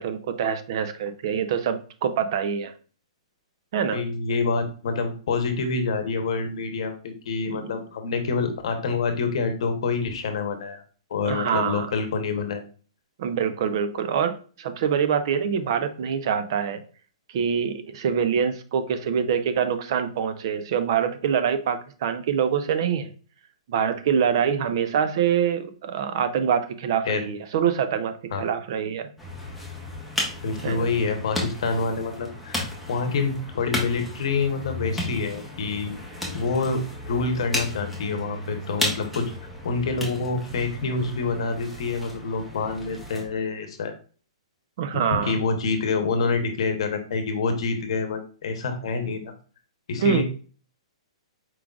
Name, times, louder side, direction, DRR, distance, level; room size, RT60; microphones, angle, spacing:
voice 1, 0.0-2.7 3.7-4.0 7.5-7.8 11.2-11.9 13.2-16.8 17.3-23.1 23.7-29.1 30.6-30.9 44.8-45.4 50.0-50.2, right 7 dB, 45° right, 10 dB, 0.5 m, -25 dB
voice 2, 3.9-10.8 11.1-12.6 27.0-27.3 28.3-28.4 30.4-35.9 36.3-39.3 39.6-43.9 44.9-49.3 49.9-50.2, left 4 dB, 60° left, 6 dB, 0.9 m, -27 dB
sound 1, 29.2-43.3, left 1 dB, ahead, 0.8 m, -34 dB
4.6 x 3.7 x 2.4 m, 0.39 s
hypercardioid pair, 165°, 3 cm